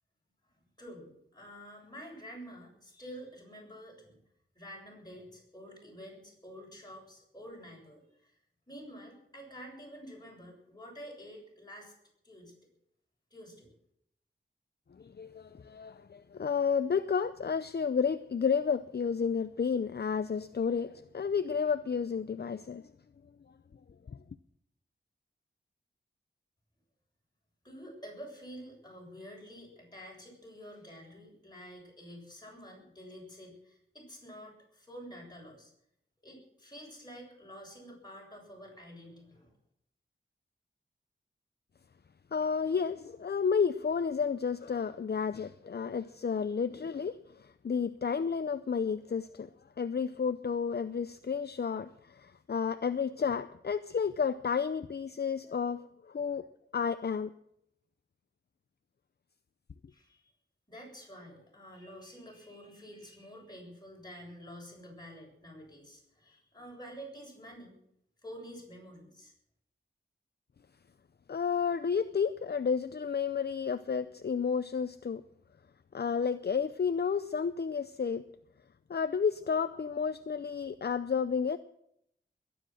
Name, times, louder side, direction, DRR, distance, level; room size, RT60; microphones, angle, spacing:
voice 1, 0.8-4.2 4.5-8.3 8.7-11.9 12.2-12.5 13.3-13.7 27.6-35.7 36.2-39.5 59.9-60.3 60.7-67.8 68.2-69.3, equal, 20° left, 7.8 m, -49 dB
voice 2, 15.0-22.8 24.1-24.2 42.3-49.5 49.8-56.4 56.7-57.3 71.3-75.2 75.9-78.2 78.9-81.6, left 6 dB, 50° left, 0.6 m, -31 dB
22.0 x 10.0 x 6.4 m
wide cardioid pair, 90°, 21 cm